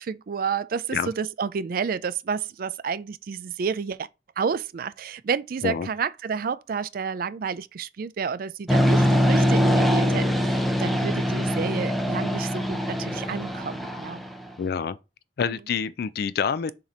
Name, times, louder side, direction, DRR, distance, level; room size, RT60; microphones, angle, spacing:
voice 1, 0.0-4.1 4.4-14.2 15.5-15.6, right 6 dB, 50° right, 0.4 m, -30 dB
sound 1, 8.7-14.5, equal, ahead, 0.6 m, -23 dB
voice 2, 14.6-15.0 15.4-16.7, left 6 dB, 55° left, 0.4 m, -27 dB
7.2 x 2.9 x 5.0 m
head